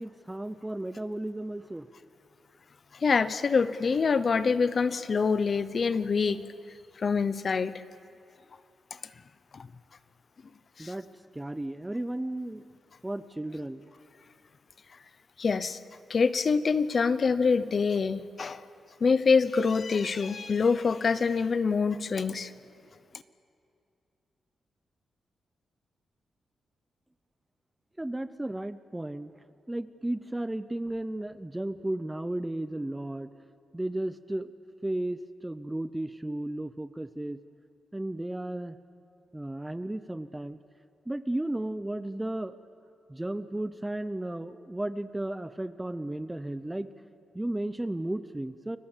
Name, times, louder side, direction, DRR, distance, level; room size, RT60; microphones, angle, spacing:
voice 1, 0.0-1.9 10.8-11.1 11.3-12.6 13.0-13.9 28.0-29.3 29.7-33.3 33.7-34.5 34.8-37.4 37.9-38.8 39.3-40.6 41.1-42.5 43.1-46.9 47.3-48.8, right 1 dB, 10° right, 13 dB, 0.6 m, -34 dB
voice 2, 2.9-6.5 7.0-7.7 8.9-9.0 9.5-9.7 10.8-10.9 15.4-15.8 16.1-18.6 19.0-22.5, left 5 dB, 40° left, 14 dB, 0.8 m, -25 dB
29.5 x 24.0 x 7.4 m, 2.5 s
wide cardioid pair, 160°, 0 cm